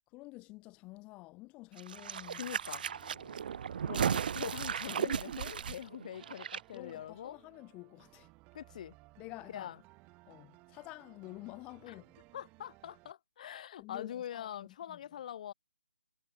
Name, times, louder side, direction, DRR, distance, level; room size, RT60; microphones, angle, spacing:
voice 1, 0.1-2.6 3.0-3.4 5.7-5.8 6.7-8.3 9.2-9.8 10.3-12.2 13.8-15.0, left 22 dB, 15° left, 2.2 m, -50 dB
sound 1, 1.8-6.6 6.9-7.0, right 8 dB, 50° right, 0.4 m, -35 dB
sound 2, 1.9-13.1, right 24 dB, 20° right, 4.5 m, -61 dB
voice 2, 2.3-2.8 3.8-7.4 8.5-8.9 9.5-9.7 11.9-12.0 12.3-15.5, left 10 dB, 40° left, 2.9 m, -43 dB
hypercardioid pair, 155°, 6 cm